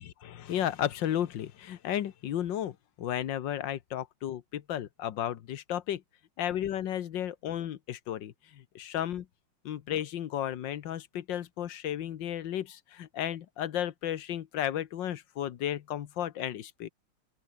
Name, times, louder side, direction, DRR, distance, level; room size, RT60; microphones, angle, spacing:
voice 1, 0.2-6.0 6.4-9.3 9.7-16.9, left 11 dB, 85° left, 1.7 m, -33 dB
open air
omnidirectional pair, 1.9 m